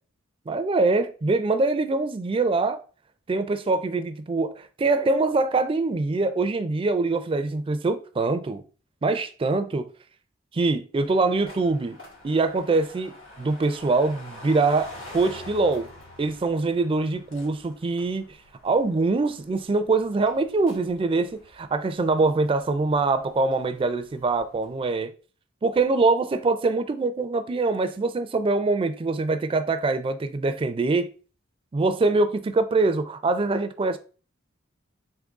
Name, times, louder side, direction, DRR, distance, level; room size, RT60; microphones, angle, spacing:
voice 1, 0.5-2.8 3.3-8.6 9.0-9.9 10.5-12.0 12.2-15.9 16.2-18.3 18.6-25.1 25.6-31.1 31.7-34.0, right 3 dB, 30° right, 0.4 m, -24 dB
sound 1, 11.0-24.8, left 1 dB, 80° left, 2.1 m, -47 dB
3.8 x 3.4 x 3.5 m
head